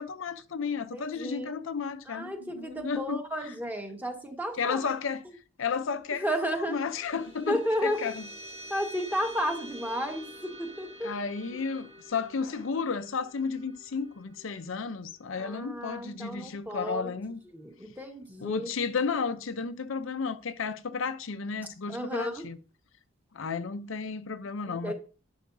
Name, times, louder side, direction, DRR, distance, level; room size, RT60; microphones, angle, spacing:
voice 1, 0.0-3.5 4.6-5.2 5.6-8.2 11.0-17.4 18.4-22.6 23.3-24.9, left 5 dB, 65° left, 0.6 m, -33 dB
voice 2, 0.9-1.5 2.1-4.9 6.1-6.8 7.5-8.0 8.7-11.1 15.4-17.1 17.5-18.7 21.9-22.4 24.7-24.9, equal, 10° right, 1.4 m, -33 dB
sound 1, 6.2-16.9, equal, 30° right, 1.4 m, -48 dB
11.0 x 9.3 x 2.6 m
head